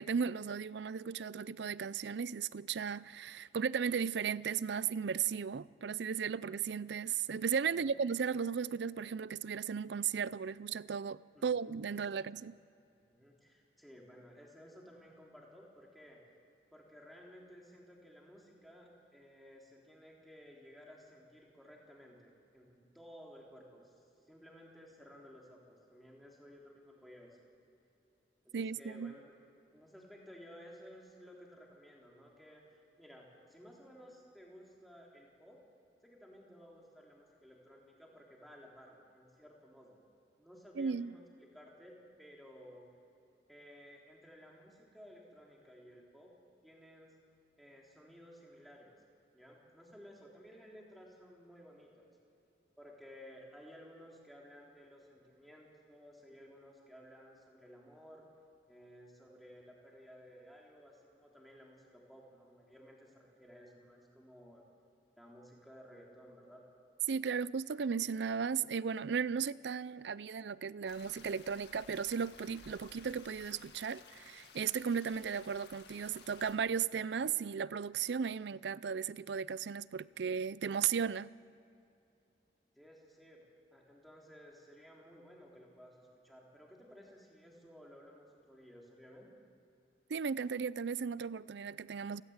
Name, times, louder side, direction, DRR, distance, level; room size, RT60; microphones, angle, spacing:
voice 1, 0.0-12.5 28.5-29.2 40.8-41.1 67.1-81.3 90.1-92.2, right 6 dB, 80° right, 0.5 m, -36 dB
voice 2, 7.6-8.0 11.3-11.5 12.1-12.4 12.9-16.2 16.7-23.9 24.3-27.4 28.4-29.3 29.7-35.6 36.0-40.0 40.4-42.9 43.5-46.3 46.6-47.2 47.6-49.0 49.3-52.1 52.8-58.3 58.7-64.6 65.2-66.6 82.8-83.4 83.7-89.3, equal, ahead, 3.5 m, -56 dB
sound 1, 70.9-76.6, left 5 dB, 75° left, 1.9 m, -57 dB
29.0 x 13.5 x 8.1 m
head